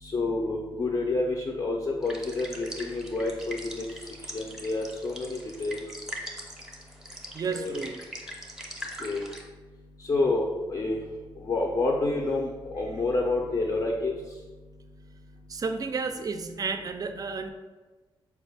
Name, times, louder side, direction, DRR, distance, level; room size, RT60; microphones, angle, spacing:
voice 1, 0.0-3.9 4.3-5.8 7.5-7.8 9.0-9.2 10.0-11.0 11.4-14.1, left 2 dB, 40° left, 0 dB, 0.5 m, -28 dB
sound 1, 2.0-9.4, equal, 5° right, 0.6 m, -42 dB
voice 2, 7.3-8.0 15.5-17.5, right 4 dB, 40° right, 8 dB, 0.3 m, -32 dB
4.3 x 2.3 x 3.3 m, 1.3 s
cardioid pair, 80°, 10 cm